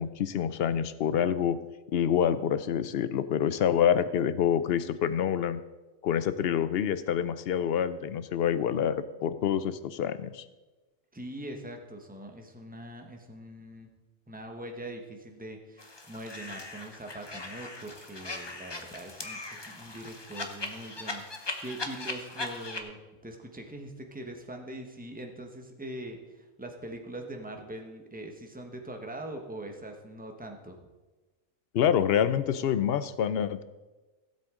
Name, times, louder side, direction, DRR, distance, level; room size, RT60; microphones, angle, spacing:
voice 1, 0.0-1.6 1.9-5.6 6.0-10.4 31.7-33.6, left 9 dB, 60° left, 14 dB, 0.7 m, -27 dB
voice 2, 11.1-13.9 14.3-30.8, right 1 dB, 5° right, 3 dB, 1.1 m, -42 dB
sound 1, 15.8-22.8, left 2 dB, 25° left, 0.8 m, -39 dB
16.5 x 7.8 x 3.7 m, 1.2 s
omnidirectional pair, 1.4 m